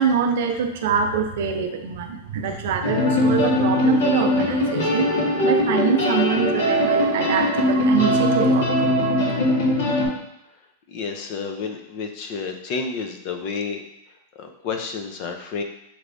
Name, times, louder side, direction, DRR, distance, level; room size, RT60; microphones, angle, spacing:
voice 1, 0.0-5.1 5.4-9.4, right 6 dB, 65° right, 5 dB, 0.6 m, -24 dB
sound 1, 2.8-10.1, left 1 dB, 75° left, 1.6 m, -20 dB
voice 2, 10.9-13.8 14.4-15.6, left 5 dB, 50° left, 5 dB, 0.6 m, -30 dB
5.9 x 3.2 x 2.6 m, 0.84 s
hypercardioid pair, 130°, 0 cm